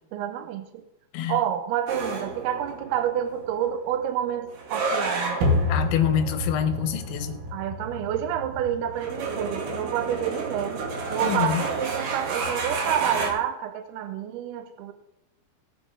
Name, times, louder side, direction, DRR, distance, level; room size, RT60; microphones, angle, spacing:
voice 1, 0.1-0.8 1.3-5.4 7.5-14.9, right 10 dB, 80° right, 7 dB, 2.3 m, -28 dB
sound 1, 1.9-13.3, right 1 dB, 60° right, 3.2 m, -30 dB
voice 2, 5.7-7.4 11.2-11.6, left 9 dB, 85° left, 8 dB, 3.2 m, -26 dB
20.0 x 6.8 x 3.6 m, 0.86 s
omnidirectional pair, 5.2 m